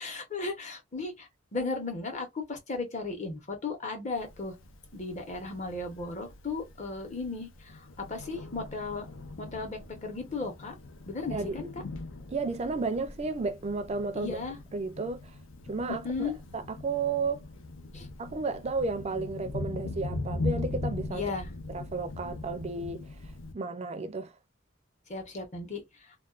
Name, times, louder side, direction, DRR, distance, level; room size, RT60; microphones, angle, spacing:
voice 1, 0.0-4.5 4.9-9.1 9.4-10.7 11.1-11.7 14.1-14.6 15.9-16.3 17.9-18.1 21.1-21.5 25.1-25.8, left 3 dB, 40° left, 0.8 m, -35 dB
Thunder, 4.2-23.5, left 2 dB, 85° left, 0.5 m, -40 dB
voice 2, 12.3-14.4 14.7-15.3 15.7-17.4 18.2-21.2 21.7-23.1 23.5-24.3, right 4 dB, 35° right, 0.4 m, -33 dB
2.3 x 2.2 x 2.4 m
head